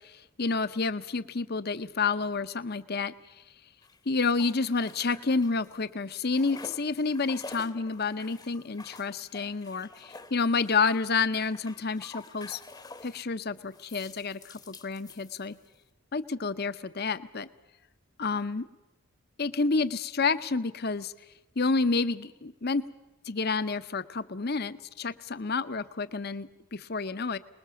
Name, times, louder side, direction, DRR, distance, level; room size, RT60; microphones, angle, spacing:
voice 1, 0.0-3.1 4.1-12.6 13.0-15.6 16.1-17.5 18.2-18.7 19.4-21.1 21.6-22.8 23.3-27.4, left 4 dB, 45° left, 13 dB, 0.8 m, -29 dB
sound 1, 3.8-5.8 6.0-13.2 13.7-15.8, left 3 dB, 20° left, 1.0 m, -49 dB
25.5 x 20.5 x 7.0 m, 1.0 s
head